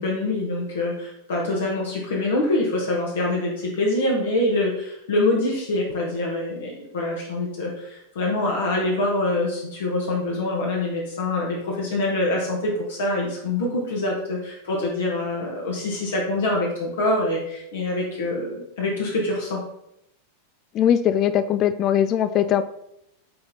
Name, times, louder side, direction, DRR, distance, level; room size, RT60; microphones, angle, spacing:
voice 1, 0.0-19.6, left 2 dB, 60° left, -2 dB, 1.5 m, -25 dB
voice 2, 20.7-22.6, left 10 dB, 35° left, 12 dB, 0.3 m, -20 dB
8.5 x 4.3 x 4.0 m, 0.80 s
figure-of-eight pair, 90°, 0 cm